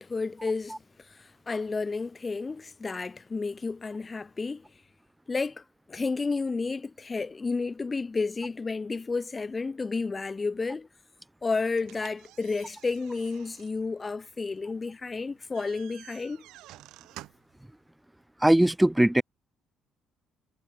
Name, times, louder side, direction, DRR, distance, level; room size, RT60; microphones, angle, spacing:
voice 1, 0.0-4.7 5.3-10.9 11.4-16.5, left 4 dB, 30° left, 1.0 m, -31 dB
sound 1, 11.7-17.6, right 16 dB, 70° right, 3.5 m, -51 dB
voice 2, 18.4-19.2, right 1 dB, 10° right, 0.4 m, -20 dB
hypercardioid pair, 55°, 0 cm